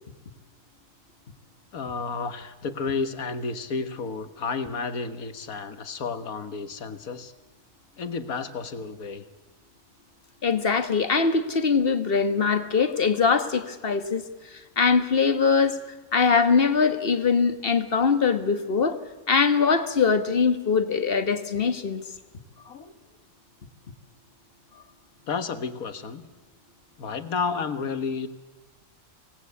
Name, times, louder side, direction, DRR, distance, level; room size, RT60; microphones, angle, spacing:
voice 1, 1.7-7.3 8.0-9.3 22.7-23.0 25.3-26.2 27.0-28.3, left 5 dB, 85° left, 10 dB, 1.8 m, -31 dB
voice 2, 10.4-14.2 14.5-15.8 16.1-19.0 19.3-22.0, left 5 dB, 45° left, 10 dB, 1.5 m, -22 dB
24.5 x 18.5 x 8.4 m, 1.2 s
omnidirectional pair, 1.5 m